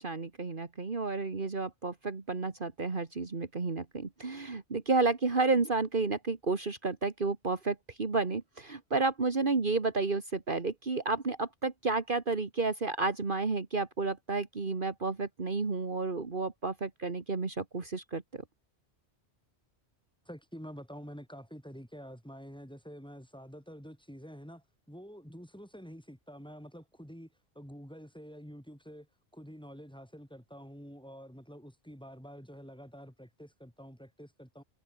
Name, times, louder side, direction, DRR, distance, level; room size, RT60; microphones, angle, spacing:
voice 1, 0.0-18.4, right 3 dB, 50° right, 2.0 m, -31 dB
voice 2, 20.2-34.6, equal, 5° left, 6.4 m, -48 dB
omnidirectional pair, 1.1 m